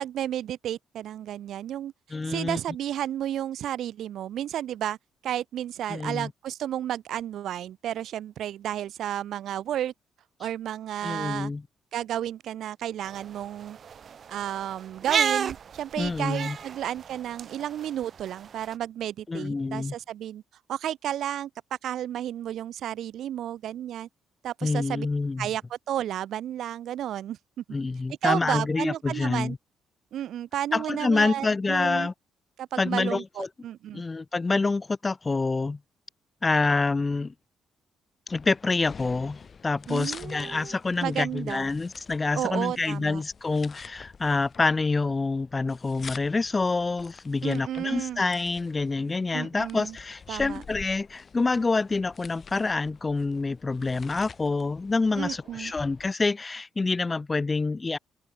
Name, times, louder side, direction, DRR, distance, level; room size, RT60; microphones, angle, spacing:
voice 1, 0.0-1.9 2.3-5.0 5.2-9.9 10.4-11.5 11.9-13.8 14.3-20.4 20.7-21.5 21.8-24.1 24.4-25.1 25.4-27.6 28.2-29.5 30.1-32.1 32.6-34.0 39.9-41.7 42.3-43.2 47.4-48.2 49.3-50.0 50.3-50.6 55.2-55.7, right 11 dB, 75° right, 1.0 m, -32 dB
voice 2, 2.1-2.6 5.9-6.3 11.0-11.6 16.0-16.6 19.3-19.9 24.6-25.5 27.7-29.6 30.7-32.1 32.8-33.5 33.9-35.8 36.4-37.3 38.3-58.0, left 3 dB, 25° left, 0.7 m, -27 dB
sound 1, 13.0-18.7, right 7 dB, 50° right, 2.4 m, -33 dB
sound 2, 38.3-56.1, left 6 dB, 40° left, 4.8 m, -48 dB
open air
cardioid pair, 90°, 0 cm